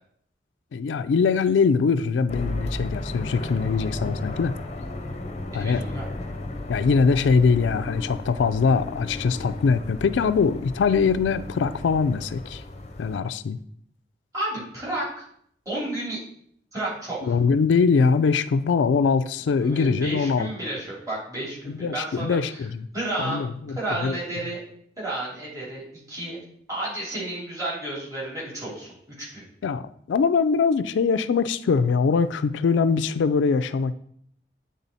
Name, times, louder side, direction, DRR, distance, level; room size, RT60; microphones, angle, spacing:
voice 1, 0.7-4.5 5.5-5.8 6.7-12.6 13.0-13.6 17.2-20.5 21.7-22.9 23.2-24.2 29.6-33.9, left 5 dB, 90° left, 13 dB, 0.3 m, -22 dB
sound 1, 2.3-13.2, left 1 dB, 35° left, 0.6 m, -34 dB
voice 2, 5.5-6.0 14.3-15.2 15.6-16.2 16.7-17.3 19.6-22.7 22.9-24.6 25.0-25.8 26.1-26.4 26.7-29.4, right 1 dB, 20° right, -6 dB, 2.7 m, -32 dB
8.4 x 3.7 x 4.1 m, 0.67 s
head